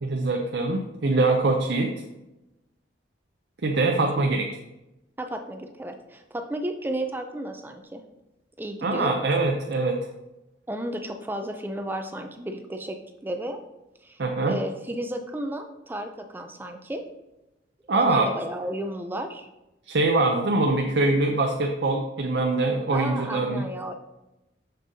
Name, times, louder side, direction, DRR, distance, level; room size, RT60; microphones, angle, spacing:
voice 1, 0.0-2.0 3.6-4.5 8.8-10.1 14.2-14.6 17.9-18.4 19.9-23.6, right 2 dB, 60° right, 2 dB, 0.5 m, -23 dB
voice 2, 3.8-4.1 5.2-8.0 8.6-9.2 10.7-13.0 13.2-13.6 14.0-17.0 17.9-19.5 22.9-23.9, right 1 dB, 10° right, 6 dB, 0.4 m, -33 dB
7.1 x 6.7 x 2.7 m, 0.97 s
head